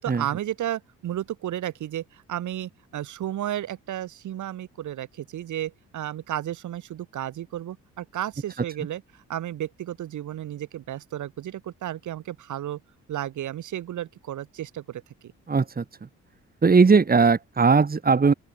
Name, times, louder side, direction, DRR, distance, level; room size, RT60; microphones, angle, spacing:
voice 1, 0.0-9.0 9.3-12.8 13.1-15.0, right 12 dB, 75° right, 7.1 m, -33 dB
voice 2, 15.5-15.8 16.6-18.3, right 5 dB, 30° right, 3.3 m, -18 dB
open air
cardioid pair, 90°, 30 cm